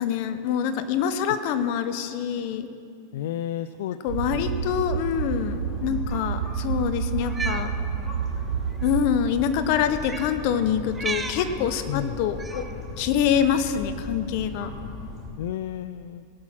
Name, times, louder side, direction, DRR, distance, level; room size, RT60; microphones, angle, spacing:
voice 1, 0.0-2.7 4.0-7.7 8.8-12.7 13.0-14.7, left 8 dB, 55° left, 10 dB, 0.9 m, -25 dB
voice 2, 3.1-4.0 4.3-4.5 11.9-12.2 15.4-16.3, left 11 dB, 75° left, 13 dB, 0.3 m, -32 dB
sound 1, 4.1-15.3, left 2 dB, 30° left, 2.6 m, -37 dB
sound 2, 4.1-9.3, right 9 dB, 75° right, 0.5 m, -30 dB
Cat, 7.2-7.7 8.7-8.9 10.0-10.3 10.9-11.4 12.4-12.7, right 4 dB, 15° right, 0.7 m, -33 dB
18.0 x 6.2 x 5.9 m, 2.4 s
hypercardioid pair, 125°, 0 cm